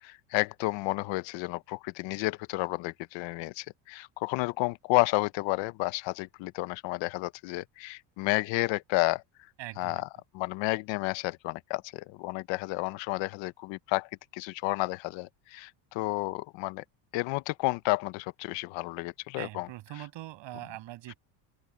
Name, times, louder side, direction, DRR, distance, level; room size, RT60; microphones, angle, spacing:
voice 1, 0.0-9.2 9.8-10.1 10.3-16.8 17.1-19.7 21.1-21.2, left 21 dB, 65° left, 0.9 m, -31 dB
voice 2, 9.6-10.0 19.4-21.2, right 16 dB, 60° right, 6.3 m, -42 dB
open air
cardioid pair, 120°, 49 cm